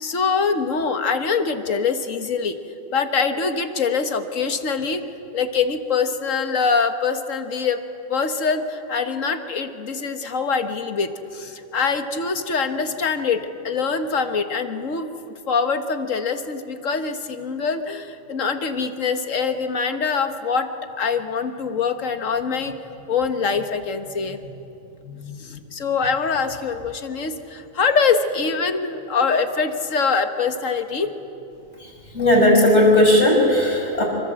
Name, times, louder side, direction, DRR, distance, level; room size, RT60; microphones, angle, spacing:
voice 1, 0.0-2.6 2.9-5.0 5.3-7.8 8.1-20.7 21.0-22.8 23.1-24.6 25.0-31.1, left 5 dB, 80° left, 8 dB, 1.8 m, -24 dB
voice 2, 31.8-34.0, left 1 dB, 60° left, -2 dB, 6.7 m, -16 dB
27.0 x 25.0 x 7.7 m, 2.8 s
omnidirectional pair, 1.3 m